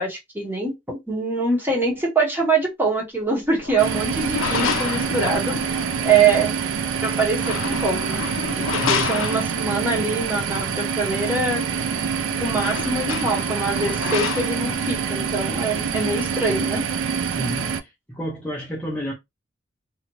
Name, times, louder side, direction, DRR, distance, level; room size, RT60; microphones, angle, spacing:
voice 1, 0.0-5.5 6.0-6.5 7.0-8.2 8.5-11.6 12.4-16.8, right 4 dB, 10° right, 1.0 m, -24 dB
sound 1, 3.5-6.1 7.2-9.9 11.9-12.0 12.2-14.8, left 6 dB, 75° left, 0.4 m, -30 dB
sound 2, 3.8-17.8, right 6 dB, 75° right, 0.4 m, -26 dB
voice 2, 8.8-9.1 17.4-19.1, right 1 dB, 5° left, 0.6 m, -30 dB
2.7 x 2.4 x 3.0 m
head